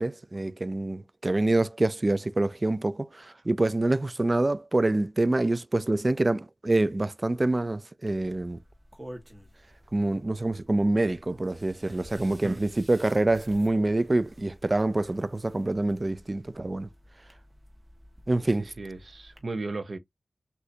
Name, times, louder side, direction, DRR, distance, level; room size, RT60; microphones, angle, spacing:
voice 1, 0.0-8.6 9.9-16.9 18.3-18.7, right 2 dB, 35° right, 0.4 m, -26 dB
sound 1, 8.1-19.4, equal, 10° right, 1.6 m, -51 dB
voice 2, 18.6-20.0, right 3 dB, 55° right, 0.8 m, -35 dB
6.3 x 2.6 x 2.7 m
wide cardioid pair, 65°, 0 cm